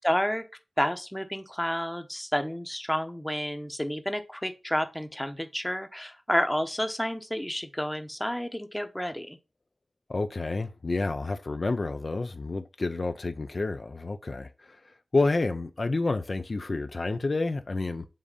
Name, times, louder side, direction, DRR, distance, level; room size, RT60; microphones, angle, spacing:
voice 1, 0.0-0.5 0.8-9.4, equal, 10° left, 0.8 m, -30 dB
voice 2, 10.1-14.8 15.1-18.1, left 3 dB, 55° left, 0.5 m, -29 dB
7.4 x 2.7 x 4.9 m
cardioid pair, 50°, 0 cm